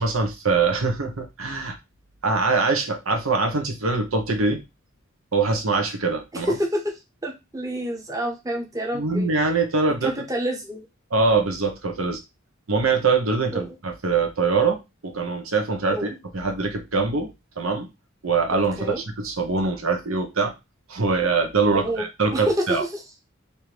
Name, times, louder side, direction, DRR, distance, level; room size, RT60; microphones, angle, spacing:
voice 1, 0.0-1.8 2.2-4.6 5.3-6.5 8.9-10.2 11.1-12.2 12.7-17.3 17.6-17.9 18.2-20.5 20.9-22.8, right 4 dB, 85° right, 4 dB, 1.0 m, -23 dB
voice 2, 6.3-6.8 7.2-9.3 10.0-10.9 13.5-13.8 15.9-16.1 18.8-19.0 21.7-22.0 22.3-22.7 22.9-23.0, equal, 15° right, 0 dB, 1.0 m, -28 dB
3.4 x 2.7 x 4.6 m, 0.24 s
head